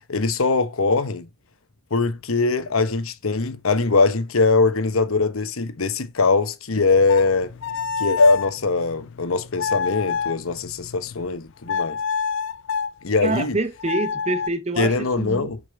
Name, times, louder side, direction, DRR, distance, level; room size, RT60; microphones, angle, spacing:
voice 1, 0.1-1.3 1.9-7.5 8.0-12.0 13.0-13.6 14.8-15.6, left 3 dB, 85° left, 1.0 m, -21 dB
sound 1, 6.9-11.3 11.7-12.9 13.8-14.5, left 6 dB, 60° left, 0.3 m, -28 dB
voice 2, 13.2-15.5, right 2 dB, 30° right, 0.8 m, -26 dB
6.7 x 5.2 x 5.2 m
head